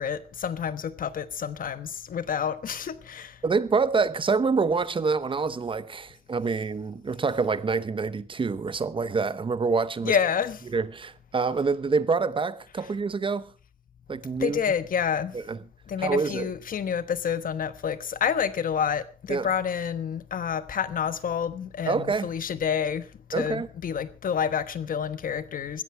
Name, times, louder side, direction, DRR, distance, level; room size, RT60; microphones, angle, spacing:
voice 1, 0.0-3.4 10.0-10.7 14.4-15.4 15.9-25.8, left 7 dB, 70° left, 1.2 m, -28 dB
voice 2, 3.4-10.2 10.7-13.5 14.1-14.6 15.5-15.6 16.0-16.5 19.3-19.5 21.9-22.3 23.3-23.7, right 4 dB, 35° right, 0.8 m, -26 dB
16.0 x 14.0 x 4.5 m
wide cardioid pair, 135°, 15 cm